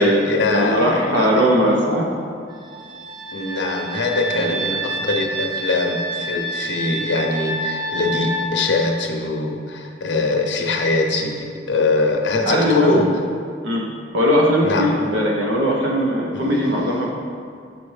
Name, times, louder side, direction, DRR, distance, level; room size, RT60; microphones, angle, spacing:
voice 1, 0.0-1.5 3.3-13.1 14.6-15.0 16.3-16.5, left 3 dB, 85° left, 2 dB, 0.7 m, -22 dB
voice 2, 0.5-2.0 4.3-4.6 12.4-13.1 13.6-13.8 14.1-17.1, equal, 85° right, -2 dB, 0.8 m, -19 dB
sound 1, 2.5-8.5, right 1 dB, 25° right, 0.5 m, -28 dB
8.4 x 4.2 x 3.2 m, 2.3 s
head